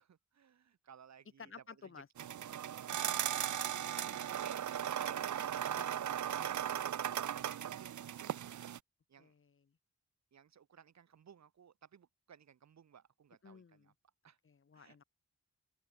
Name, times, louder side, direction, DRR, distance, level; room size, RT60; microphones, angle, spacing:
voice 1, 0.0-1.5 1.8-1.9 2.2-2.3 3.0-3.4 3.9-5.4 6.4-8.6 9.1-9.3 10.3-13.9 14.2-14.4 14.7-15.0, right 8 dB, 65° right, 2.1 m, -57 dB
voice 2, 1.4-2.1 2.9-3.2 5.7-6.0 9.2-9.8 13.4-13.9 14.4-15.0, left 5 dB, 45° left, 5.9 m, -54 dB
sound 1, 2.2-8.8, right 10 dB, 80° right, 1.1 m, -37 dB
open air
wide cardioid pair, 160°, 29 cm